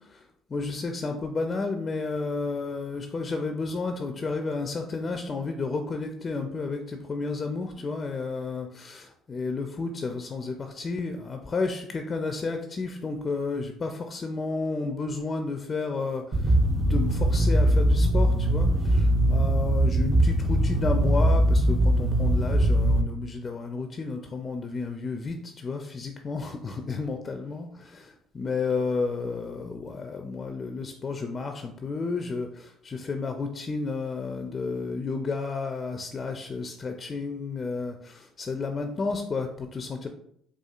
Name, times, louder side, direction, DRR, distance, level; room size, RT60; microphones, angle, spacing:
voice 1, 0.5-40.1, left 4 dB, 40° left, 5 dB, 0.4 m, -32 dB
sound 1, 16.3-23.0, right 1 dB, 35° right, 0.6 m, -21 dB
4.3 x 2.4 x 2.4 m, 0.69 s
supercardioid pair, 65°, 0 cm